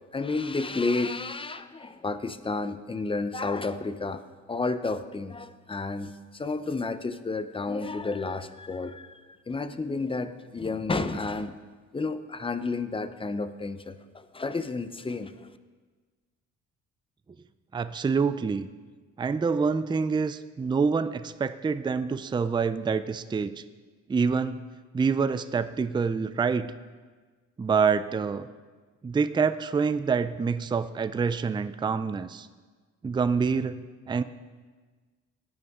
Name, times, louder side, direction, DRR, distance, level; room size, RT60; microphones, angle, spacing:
voice 1, 0.1-4.2 4.5-11.6 11.9-15.5, left 3 dB, 20° left, 11 dB, 0.7 m, -31 dB
voice 2, 17.7-18.7 19.2-23.6 24.1-24.6 24.9-26.7 27.6-28.5 29.0-32.5 33.0-33.8 34.1-34.2, right 5 dB, 15° right, 12 dB, 0.4 m, -26 dB
17.5 x 9.6 x 3.6 m, 1.4 s
cardioid pair, 90°, 30 cm